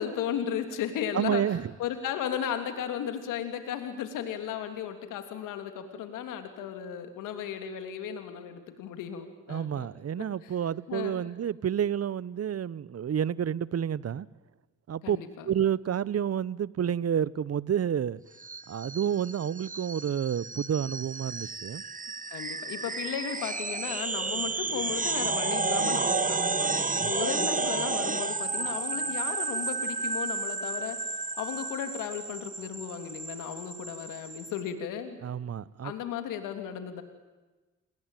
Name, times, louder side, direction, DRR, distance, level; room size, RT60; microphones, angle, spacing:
voice 1, 0.0-10.5 10.9-11.3 15.0-15.5 22.3-31.0 31.4-35.2 35.8-37.0, left 9 dB, 85° left, 3.1 m, -35 dB
voice 2, 1.1-1.6 9.5-14.3 14.9-15.2 15.5-18.2 18.7-21.8 35.2-35.9, right 9 dB, 50° right, 0.9 m, -29 dB
sound 1, 18.4-34.6, right 4 dB, 25° right, 1.5 m, -32 dB
29.0 x 22.0 x 9.2 m
supercardioid pair, 50°, 31 cm